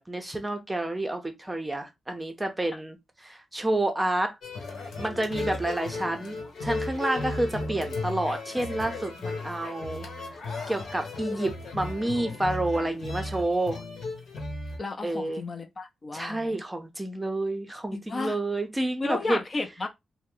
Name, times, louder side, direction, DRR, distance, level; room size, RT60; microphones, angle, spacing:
voice 1, 0.0-3.0 3.2-4.4 5.0-10.1 10.7-13.8 15.0-15.4 16.1-19.4, right 1 dB, 10° right, 0.6 m, -29 dB
sound 1, 4.4-14.8, left 2 dB, 70° left, 1.1 m, -35 dB
voice 2, 14.8-16.6 17.9-18.4 19.0-19.9, left 3 dB, 35° left, 0.5 m, -33 dB
2.7 x 2.1 x 3.7 m
wide cardioid pair, 135°, 0 cm